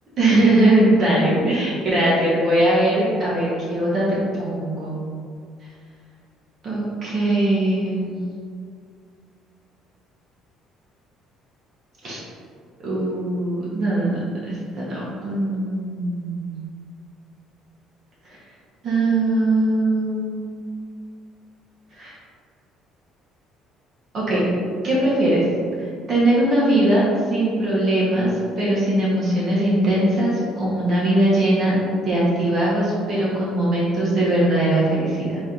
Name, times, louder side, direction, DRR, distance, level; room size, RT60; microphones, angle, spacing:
voice 1, 0.2-4.0 4.4-5.0 6.6-8.2 12.0-12.2 12.8-16.5 18.2-18.4 18.8-20.5 21.9-22.2 24.1-24.4 24.8-25.4 25.8-28.3 28.6-31.7 32.0-35.4, right 1 dB, 35° right, -6 dB, 1.0 m, -20 dB
4.1 x 2.6 x 4.4 m, 2.2 s
cardioid pair, 175°, 0 cm